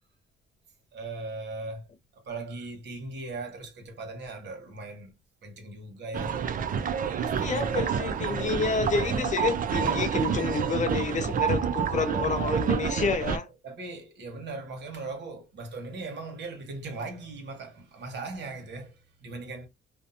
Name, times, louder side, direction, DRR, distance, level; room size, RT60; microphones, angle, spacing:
voice 1, 0.9-5.1 5.4-6.4 7.2-7.7 8.3-8.9 9.8-10.1 13.6-19.7, right 3 dB, 65° right, 1.1 m, -39 dB
sound 1, 6.1-13.4, right 7 dB, 45° right, 0.4 m, -28 dB
voice 2, 7.4-13.5, left 5 dB, 40° left, 0.5 m, -29 dB
2.6 x 2.1 x 2.6 m
cardioid pair, 90°, 20 cm